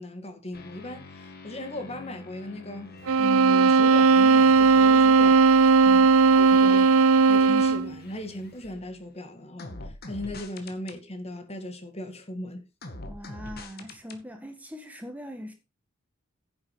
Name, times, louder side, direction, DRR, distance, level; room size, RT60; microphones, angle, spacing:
voice 1, 0.0-5.4 6.3-12.7, left 1 dB, 30° left, 2.2 m, -38 dB
sound 1, 0.5-9.1 9.6-11.0 12.8-14.2, left 2 dB, 50° left, 2.0 m, -45 dB
sound 2, 3.1-7.9, right 4 dB, 85° right, 0.5 m, -17 dB
voice 2, 13.1-15.5, equal, 5° right, 1.6 m, -41 dB
10.5 x 8.5 x 5.0 m
head